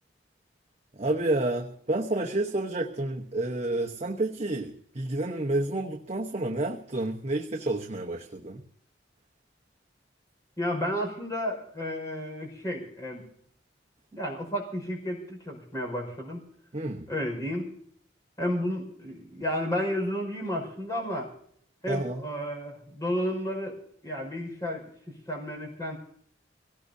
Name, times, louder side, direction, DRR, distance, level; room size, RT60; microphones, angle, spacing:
voice 1, 0.9-8.6 16.7-17.0 21.9-22.2, right 2 dB, 35° right, 1 dB, 1.0 m, -30 dB
voice 2, 10.6-13.2 14.1-16.4 17.1-17.7 18.4-21.3 21.8-23.8 24.0-24.8 25.3-26.0, equal, 20° left, 0 dB, 5.2 m, -32 dB
24.5 x 18.0 x 2.7 m, 0.64 s
head